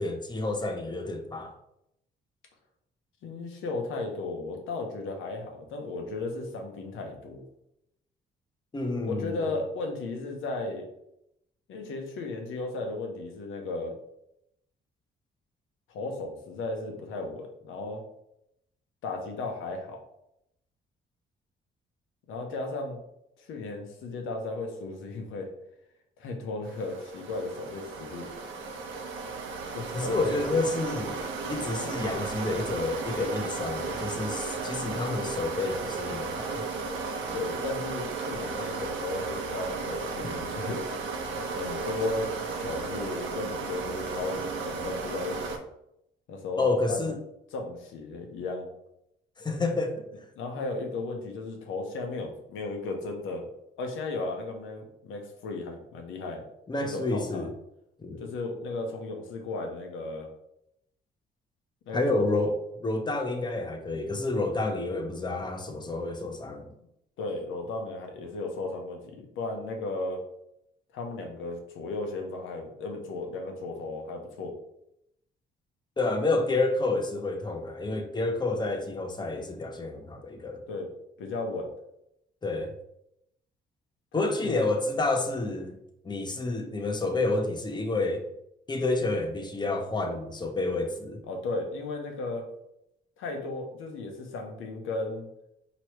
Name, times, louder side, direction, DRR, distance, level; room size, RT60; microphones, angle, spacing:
voice 1, 0.0-1.5 8.7-9.4 29.9-31.2 31.5-36.7 46.6-47.1 49.4-50.1 56.7-57.5 58.0-58.2 61.9-62.6 62.8-66.7 76.0-80.6 82.4-82.7 84.1-85.8 86.0-88.2 88.7-91.2, left 2 dB, 20° left, 4 dB, 0.7 m, -29 dB
voice 2, 3.2-7.4 9.0-10.8 11.7-13.9 15.9-18.0 19.0-20.0 22.3-23.0 23.4-25.5 26.2-28.3 29.7-30.5 37.3-41.1 41.4-45.5 46.3-47.1 47.5-48.7 50.3-53.5 53.8-56.4 56.8-57.5 58.2-60.3 61.9-62.5 67.2-70.2 70.9-74.5 80.7-80.9 81.2-81.7 84.1-84.6 91.3-92.4 93.2-95.3, left 2 dB, 85° left, 2 dB, 0.9 m, -35 dB
sound 1, 26.6-45.6, right 4 dB, 75° right, 0.8 m, -34 dB
4.6 x 3.0 x 3.1 m, 0.79 s
cardioid pair, 90°, 20 cm